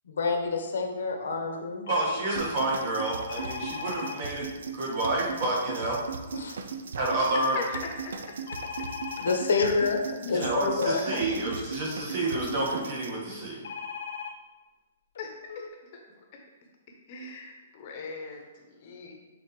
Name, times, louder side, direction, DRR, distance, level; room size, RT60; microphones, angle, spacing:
voice 1, 0.1-1.8 6.3-6.6 9.2-11.2, left 4 dB, 80° left, 3 dB, 1.0 m, -28 dB
sound 1, 1.9-2.2 3.3-4.2 8.5-9.4 13.6-14.3 15.1-15.2 15.5-15.7, left 6 dB, 65° left, 0.5 m, -37 dB
voice 2, 1.9-4.5 4.7-6.0 7.0-7.6 10.3-13.6, right 2 dB, 45° right, -4 dB, 1.6 m, -29 dB
sound 2, 2.4-13.1, right 5 dB, 80° right, 0.5 m, -38 dB
voice 3, 7.5-8.1 9.7-9.8 15.2-15.6 15.9-16.0 17.1-19.1, left 4 dB, 30° left, 1 dB, 0.9 m, -39 dB
8.0 x 4.0 x 3.2 m, 1.2 s
hypercardioid pair, 175°, 0 cm